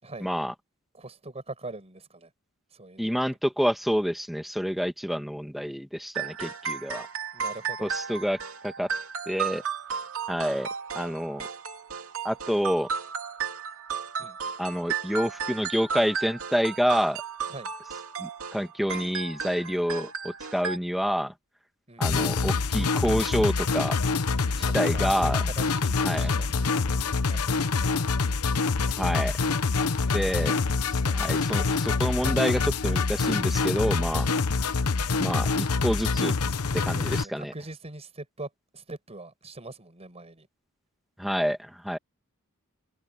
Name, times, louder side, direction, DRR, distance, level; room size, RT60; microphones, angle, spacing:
voice 1, 0.2-0.5 3.0-7.1 7.8-8.4 8.6-8.9 9.3-9.6 10.3-10.7 10.9-11.5 12.2-12.9 14.6-17.2 18.2-21.3 22.0-24.0 24.6-25.5 26.0-26.3 29.0-29.3 30.1-30.6 31.1-34.3 35.2-36.3 36.8-37.5 41.2-42.0, equal, ahead, 1.9 m, -28 dB
voice 2, 0.9-2.3 2.7-3.2 7.3-7.9 14.2-14.5 17.5-17.7 21.9-22.4 24.5-25.2 25.5-28.1 31.0-31.2 36.9-40.5, right 2 dB, 30° right, 5.6 m, -43 dB
sound 1, 6.1-20.8, right 6 dB, 70° right, 3.0 m, -34 dB
sound 2, 22.0-37.2, left 4 dB, 90° left, 1.0 m, -26 dB
head